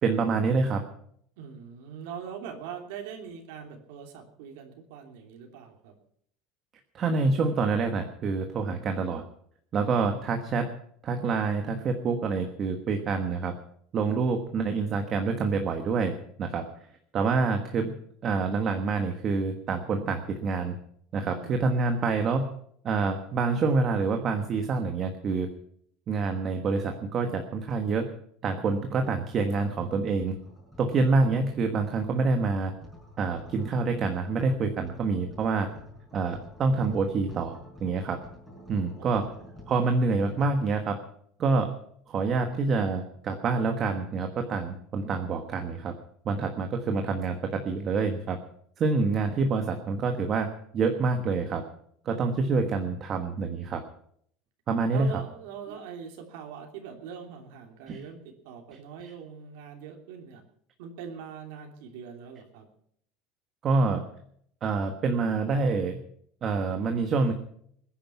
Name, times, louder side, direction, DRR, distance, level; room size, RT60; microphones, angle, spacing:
voice 1, 0.0-0.8 6.9-9.2 9.7-10.7 11.0-13.5 13.9-16.1 16.4-16.7 17.1-17.9 18.2-20.7 21.1-22.5 22.8-25.5 26.1-28.1 28.4-30.3 30.8-32.7 33.2-35.7 36.1-38.2 38.7-39.3 39.7-41.0 41.4-41.7 42.1-45.9 46.2-48.4 48.8-50.5 50.7-51.7 52.0-53.8 54.7-55.1 57.9-58.0 63.6-64.0 64.6-66.0 66.4-67.3, right 4 dB, 25° right, 5 dB, 1.3 m, -27 dB
voice 2, 1.4-5.9 21.2-22.3 39.0-40.2 54.9-60.4 60.8-62.7, right 7 dB, 70° right, 3 dB, 3.1 m, -42 dB
sound 1, 30.0-40.5, left 1 dB, ahead, 5.7 m, -50 dB
21.5 x 10.0 x 5.9 m, 0.66 s
cardioid pair, 180°, 0 cm